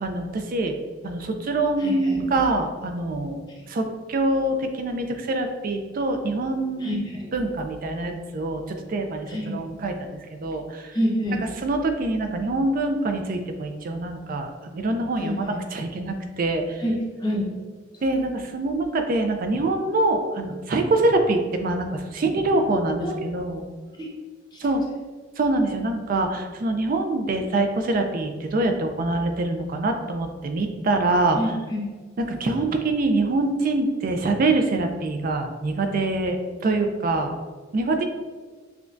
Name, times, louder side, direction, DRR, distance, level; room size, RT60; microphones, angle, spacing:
voice 1, 0.0-0.7 1.0-3.4 3.7-10.1 10.4-11.0 11.6-16.8 18.0-23.6 24.6-24.8 25.4-31.4 32.2-37.3 37.7-38.0, right 2 dB, 45° right, 5 dB, 0.4 m, -25 dB
voice 2, 1.8-2.3 6.8-7.3 9.3-9.6 10.9-11.4 15.2-15.6 16.8-17.5 23.0-23.1 23.9-24.1 24.5-24.6 31.3-31.8, equal, 20° left, -4 dB, 0.8 m, -27 dB
5.9 x 2.2 x 2.5 m, 1.4 s
head